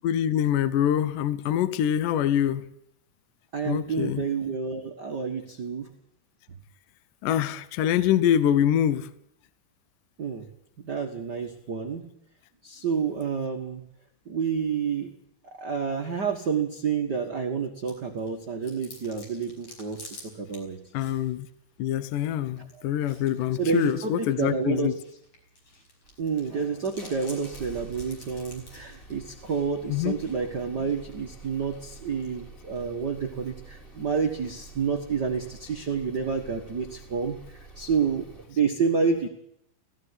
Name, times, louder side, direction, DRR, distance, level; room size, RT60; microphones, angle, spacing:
voice 1, 0.0-2.6 3.7-4.2 7.2-9.1 20.9-21.5 21.8-24.9 29.9-30.2, left 10 dB, 70° left, 15 dB, 2.1 m, -25 dB
voice 2, 3.5-5.9 10.2-10.4 10.8-12.1 12.6-13.8 14.2-15.1 15.6-20.8 23.6-24.9 26.2-37.4 37.7-39.3, right 5 dB, 90° right, 3 dB, 0.9 m, -29 dB
Chewing mastication, 17.9-35.5, left 2 dB, 45° left, 6.6 m, -53 dB
sound 1, 26.0-38.6, right 3 dB, 20° left, 3.5 m, -48 dB
17.0 x 16.0 x 9.8 m, 0.77 s
omnidirectional pair, 4.6 m